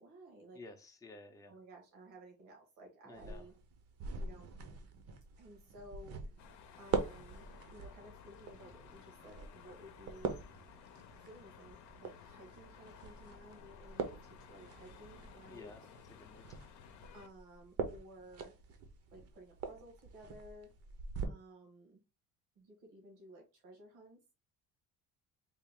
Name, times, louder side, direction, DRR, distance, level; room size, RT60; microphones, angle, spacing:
voice 1, 0.0-0.6 1.5-3.5 4.1-4.5 5.4-6.2 6.8-10.4 11.2-15.7 17.1-18.5 19.1-20.7 21.2-22.0 22.6-24.2, right 1 dB, 85° right, 1 dB, 1.7 m, -55 dB
voice 2, 0.5-1.6 3.0-3.5 15.5-16.6, left 2 dB, 10° left, 4 dB, 0.6 m, -54 dB
sound 1, 3.1-21.2, right 5 dB, 50° right, 0.7 m, -44 dB
sound 2, 6.4-17.3, left 8 dB, 65° left, 0.7 m, -57 dB
3.5 x 2.4 x 3.6 m, 0.29 s
cardioid pair, 135°, 31 cm